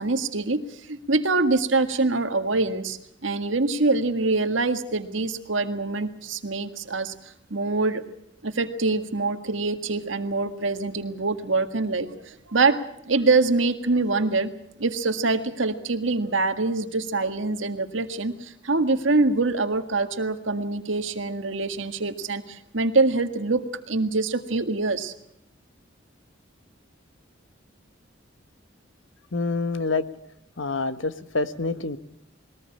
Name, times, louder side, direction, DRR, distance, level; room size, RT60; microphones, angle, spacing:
voice 1, 0.0-8.0 8.4-14.5 14.8-25.1, right 3 dB, 80° right, 8 dB, 1.8 m, -25 dB
voice 2, 29.3-30.0 30.6-32.0, left 3 dB, 80° left, 11 dB, 1.4 m, -26 dB
21.5 x 19.0 x 8.6 m, 0.76 s
head